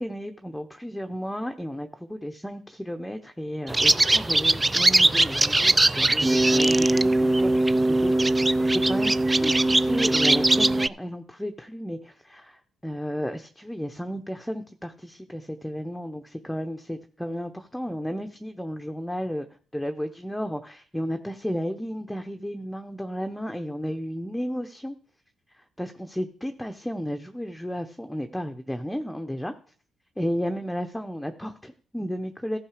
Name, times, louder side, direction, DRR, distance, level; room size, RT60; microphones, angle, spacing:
voice 1, 0.0-8.3 8.8-9.1 9.4-19.5 19.7-25.0 25.5-29.5 30.2-32.6, equal, 5° left, 6 dB, 0.8 m, -33 dB
sound 1, 3.7-10.9, right 2 dB, 15° right, 0.4 m, -20 dB
14.5 x 5.6 x 4.9 m, 0.43 s
cardioid pair, 90°, 0 cm